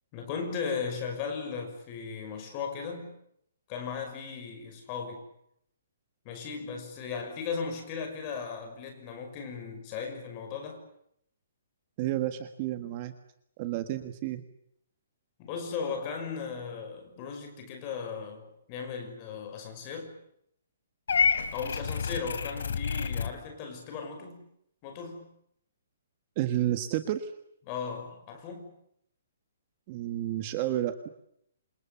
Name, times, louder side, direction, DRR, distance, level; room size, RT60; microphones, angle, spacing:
voice 1, 0.1-3.1 3.7-5.2 6.2-10.8 15.4-20.2 21.5-24.4 24.8-25.3 27.7-28.7, left 5 dB, 20° left, 4 dB, 5.9 m, -37 dB
voice 2, 12.0-13.1 13.6-14.4 26.4-27.3 29.9-31.1, right 13 dB, 25° right, 9 dB, 1.5 m, -31 dB
Purr / Meow, 21.1-23.3, left 6 dB, 75° left, 3.2 m, -28 dB
28.5 x 27.5 x 7.1 m, 0.75 s
hypercardioid pair, 175°, 0 cm